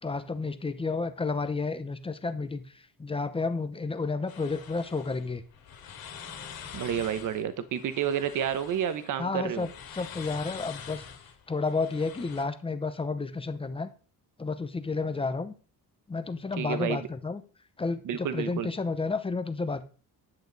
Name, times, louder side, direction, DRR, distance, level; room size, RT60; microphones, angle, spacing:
voice 1, 0.0-5.4 9.2-11.1 11.5-13.9 14.4-15.5 16.1-17.4 17.8-19.8, left 4 dB, 15° left, 11 dB, 0.8 m, -31 dB
sound 1, 4.3-12.4, left 7 dB, 75° left, 2.3 m, -45 dB
voice 2, 6.7-9.6 16.6-17.0 18.0-18.7, right 9 dB, 55° right, 12 dB, 1.0 m, -30 dB
11.0 x 8.7 x 4.0 m, 0.38 s
cardioid pair, 165°, 36 cm